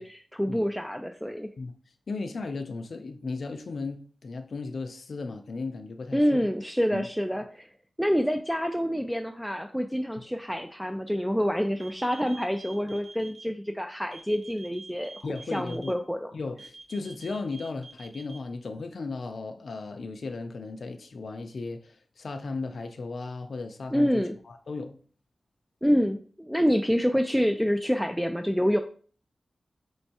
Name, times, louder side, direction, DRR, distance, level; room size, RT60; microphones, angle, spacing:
voice 1, 0.0-1.5 6.1-7.7 8.0-16.3 23.9-24.3 25.8-28.8, equal, ahead, 0.3 m, -27 dB
voice 2, 2.1-6.5 6.9-7.1 15.2-15.9 16.3-25.0, left 3 dB, 75° left, 0.4 m, -36 dB
sound 1, 11.8-13.4 14.1-15.9 16.6-18.4, right 3 dB, 25° right, 0.9 m, -47 dB
4.4 x 3.1 x 2.8 m
cardioid pair, 65°, 0 cm